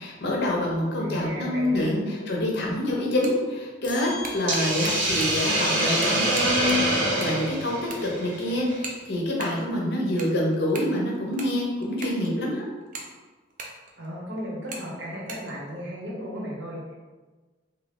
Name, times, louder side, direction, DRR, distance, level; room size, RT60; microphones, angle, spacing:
voice 1, 0.0-12.6, left 1 dB, 55° left, -2 dB, 0.6 m, -26 dB
voice 2, 1.0-1.9 14.0-16.8, equal, 65° right, -5 dB, 1.0 m, -35 dB
sound 1, 3.1-3.5 3.9-5.5 5.8-7.4 7.6-8.3 8.8-9.6 10.0-12.4 12.8-14.2 14.6-14.9 15.1-15.5, right 3 dB, 45° right, 0.4 m, -39 dB
sound 2, 3.8-5.2, left 4 dB, 25° left, 0.4 m, -41 dB
Hiss, 4.5-8.7, right 1 dB, 85° right, 0.7 m, -25 dB
2.7 x 2.5 x 3.3 m, 1.3 s
head